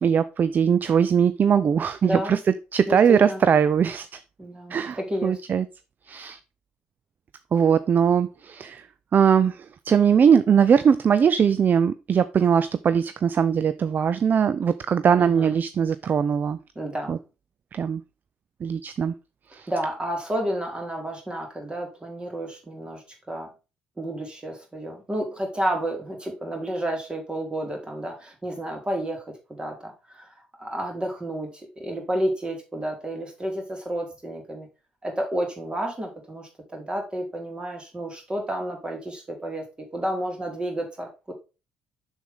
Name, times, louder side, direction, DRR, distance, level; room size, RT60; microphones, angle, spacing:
voice 1, 0.0-2.4 2.7-4.2 4.7-5.6 6.1-6.4 7.5-8.9 9.1-16.6 17.1-17.2 17.7-18.0 18.6-19.1 19.5-19.7, right 7 dB, 40° right, 0.5 m, -21 dB
voice 2, 2.0-2.4 2.9-3.4 4.4-5.4 15.2-15.6 16.7-17.2 19.7-23.5 24.0-34.7 35.0-41.3, right 1 dB, 20° right, 3.3 m, -31 dB
7.1 x 6.3 x 3.6 m
figure-of-eight pair, 50°, 5 cm